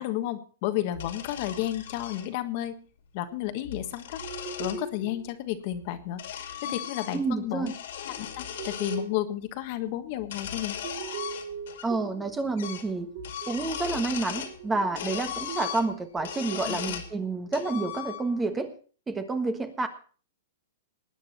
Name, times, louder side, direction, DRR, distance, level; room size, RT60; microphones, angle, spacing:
voice 1, 0.0-2.8 3.1-4.2 4.6-7.7 8.1-10.8 16.7-16.8, left 13 dB, 45° left, 9 dB, 1.4 m, -32 dB
sound 1, 0.9-2.3 3.5-4.8 5.7-7.4 7.6-9.0 10.2-11.9 12.1-12.2 12.6-12.9 13.2-14.6 15.0-17.1 17.5-18.5, left 9 dB, 65° left, 2.6 m, -37 dB
sound 2, 4.2-5.3 6.6-7.8 8.3-9.3 10.8-12.5 13.0-14.1 14.4-17.7, right 6 dB, 55° right, 6.8 m, -41 dB
voice 2, 7.1-7.7 11.8-13.1 13.5-18.7 19.1-19.9, right 3 dB, 10° right, 9 dB, 1.4 m, -29 dB
19.5 x 9.1 x 4.3 m, 0.40 s
hypercardioid pair, 150°, 0 cm